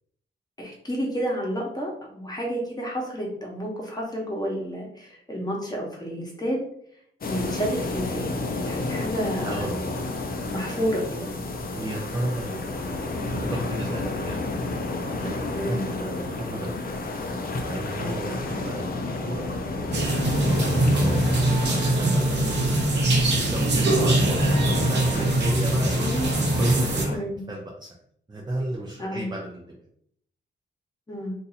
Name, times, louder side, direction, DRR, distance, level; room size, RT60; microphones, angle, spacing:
voice 1, 0.6-6.6 7.3-9.7 10.5-11.3 15.5-15.9 18.2-18.7 25.9-26.3 27.1-27.4 29.0-29.3 31.1-31.3, equal, 20° left, -2 dB, 1.1 m, -30 dB
sound 1, 7.2-27.2, left 2 dB, 45° left, 0.6 m, -31 dB
voice 2, 9.4-9.9 10.7-11.0 11.7-14.4 15.2-16.7 17.7-18.9 19.2-19.4 19.8-20.2 20.9-24.4 24.7-26.1 26.5-27.9 28.3-29.8, right 1 dB, 20° right, -2 dB, 0.6 m, -32 dB
sound 2, 19.9-27.1, right 2 dB, 60° right, 0.8 m, -22 dB
2.7 x 2.6 x 4.0 m, 0.67 s
wide cardioid pair, 115°, 20 cm